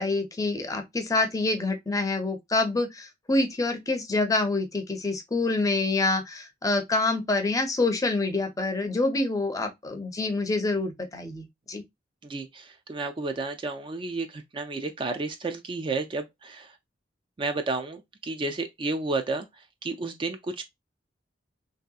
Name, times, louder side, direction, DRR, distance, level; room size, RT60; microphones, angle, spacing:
voice 1, 0.0-11.8, left 2 dB, 20° left, 0.5 m, -26 dB
voice 2, 12.2-16.7 17.4-19.5 19.8-20.6, right 3 dB, 30° right, 0.3 m, -31 dB
3.2 x 2.7 x 2.2 m
head